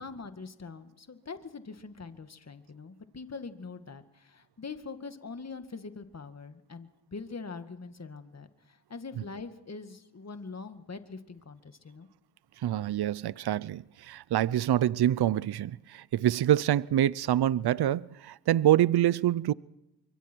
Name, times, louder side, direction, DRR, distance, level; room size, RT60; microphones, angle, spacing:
voice 1, 0.0-12.1, left 4 dB, 35° left, 2.0 m, -43 dB
voice 2, 12.6-19.5, right 12 dB, 65° right, 0.7 m, -26 dB
26.5 x 23.5 x 4.6 m
cardioid pair, 60°, 43 cm